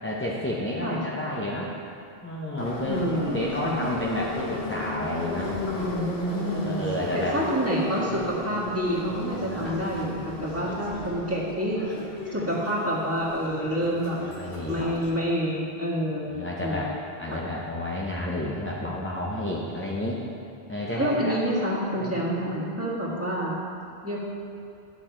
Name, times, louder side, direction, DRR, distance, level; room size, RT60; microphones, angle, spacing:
voice 1, 0.0-1.7 2.2-5.5 6.4-7.3 9.5-10.0 11.8-12.0 13.8-14.9 16.3-16.9 17.2-20.2 20.7-21.4 22.0-22.5, left 1 dB, 15° left, -4 dB, 0.6 m, -31 dB
Subway metro underground, 2.6-15.1, left 2 dB, 60° left, 1.3 m, -35 dB
voice 2, 2.8-3.8 5.7-6.8 7.1-11.8 12.3-14.2 14.7-16.3 16.6-16.9 17.3-17.4 21.0-23.6 24.0-24.2, equal, 15° right, -7 dB, 1.7 m, -28 dB
10.5 x 6.5 x 4.4 m, 2.6 s
omnidirectional pair, 1.1 m